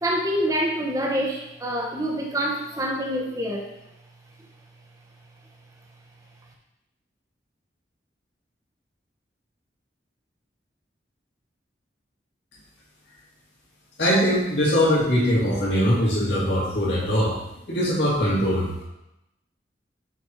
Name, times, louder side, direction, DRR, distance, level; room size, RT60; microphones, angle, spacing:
voice 1, 0.0-3.7, equal, 20° right, 0 dB, 1.0 m, -26 dB
voice 2, 14.0-17.4 17.7-18.8, equal, 75° left, -6 dB, 2.1 m, -21 dB
5.8 x 4.2 x 4.5 m, 0.89 s
head